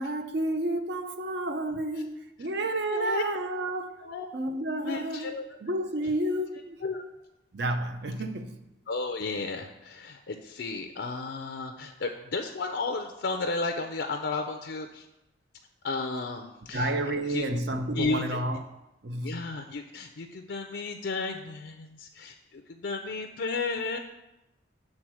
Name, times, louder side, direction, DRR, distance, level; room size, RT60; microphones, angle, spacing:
voice 1, 0.0-5.3 5.6-6.8 7.5-8.6 16.7-18.6 19.0-19.6, right 1 dB, 55° right, 7 dB, 0.6 m, -31 dB
voice 2, 2.9-3.2 4.0-4.2 4.8-5.4 6.8-7.0 8.9-15.0 15.8-16.9 17.3-17.4 17.9-18.2 19.2-24.0, left 3 dB, 65° left, 6 dB, 0.5 m, -33 dB
7.7 x 3.7 x 6.1 m, 0.92 s
head